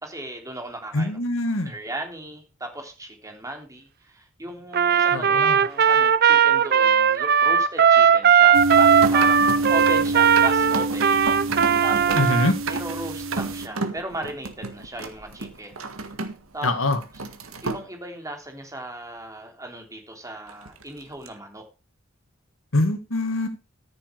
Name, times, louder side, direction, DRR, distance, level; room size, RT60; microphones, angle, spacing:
voice 1, 0.0-1.2 1.6-12.3 12.7-15.8 16.5-16.7 17.1-17.2 17.6-21.7, right 1 dB, 15° right, 3 dB, 3.2 m, -36 dB
voice 2, 0.9-1.7 5.1-5.6 12.2-12.5 16.6-17.0 22.7-23.5, left 2 dB, 75° left, 7 dB, 2.1 m, -23 dB
Trumpet, 4.7-12.5, right 7 dB, 50° right, 0.7 m, -18 dB
sound 1, 8.5-13.7, right 2 dB, 70° right, 1.3 m, -26 dB
Cat scratching, 9.0-16.5 16.8-17.8 20.5-21.3, right 3 dB, 90° right, 1.9 m, -34 dB
14.0 x 7.6 x 4.7 m, 0.29 s
head